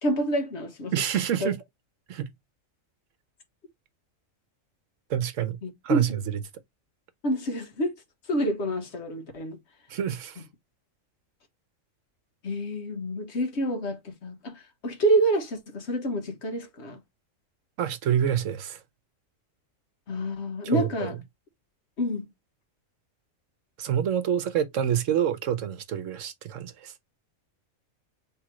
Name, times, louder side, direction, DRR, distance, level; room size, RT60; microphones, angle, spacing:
voice 1, 0.0-0.9 1.4-1.5 5.6-6.2 7.2-7.9 8.3-9.6 12.4-17.0 20.1-21.1 22.0-22.3, right 1 dB, 60° left, 1.3 m, -28 dB
voice 2, 0.9-1.6 2.1-2.3 5.1-5.6 5.8-6.2 9.9-10.4 17.8-18.8 20.6-21.1 23.8-26.9, right 9 dB, 75° right, 1.1 m, -27 dB
4.8 x 3.4 x 3.0 m
omnidirectional pair, 1.4 m